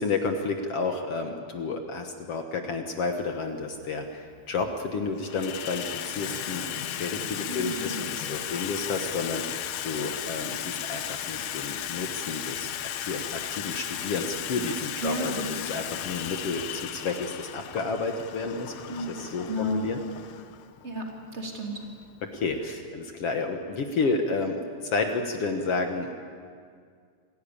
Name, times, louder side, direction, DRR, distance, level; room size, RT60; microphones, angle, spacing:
voice 1, 0.0-12.7 13.0-20.0 22.2-26.1, left 3 dB, 55° left, 4 dB, 1.8 m, -31 dB
Water tap faucet / Sink (filling or washing), 3.3-3.4 4.3-4.8 5.1-22.7, left 11 dB, 70° left, 2.1 m, -36 dB
voice 2, 7.5-8.1 15.0-15.5 18.9-19.1 19.5-19.9 20.8-21.9, right 1 dB, 20° right, 0 dB, 2.8 m, -33 dB
26.5 x 16.0 x 8.7 m, 2.1 s
omnidirectional pair, 4.1 m